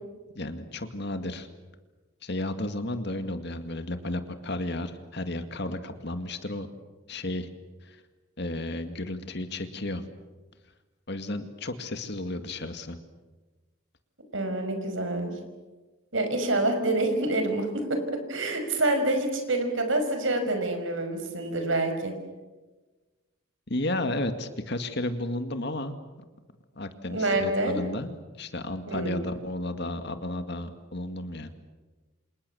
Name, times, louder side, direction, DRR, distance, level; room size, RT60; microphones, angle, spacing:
voice 1, 0.4-1.5 2.2-6.7 7.1-7.5 7.8-8.0 8.4-10.0 11.1-13.0 23.7-25.9 26.8-31.5, left 1 dB, 50° left, 8 dB, 2.2 m, -33 dB
voice 2, 14.3-15.3 16.1-22.1 27.1-27.8 28.9-29.1, right 2 dB, 65° right, 6 dB, 5.6 m, -27 dB
29.0 x 27.5 x 7.1 m, 1.2 s
head